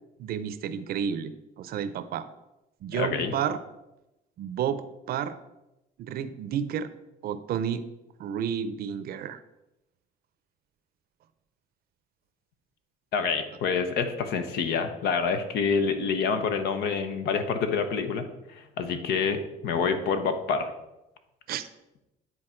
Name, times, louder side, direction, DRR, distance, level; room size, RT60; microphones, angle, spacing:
voice 1, 0.2-1.3 1.6-2.3 2.8-3.6 4.4-5.3 6.0-6.9 7.2-7.8 8.2-9.4 21.5-21.7, right 8 dB, 65° right, 12 dB, 0.6 m, -31 dB
voice 2, 2.9-3.4 13.1-20.7, left 5 dB, 75° left, 8 dB, 0.9 m, -27 dB
9.7 x 4.0 x 4.4 m, 0.96 s
cardioid pair, 110°, 17 cm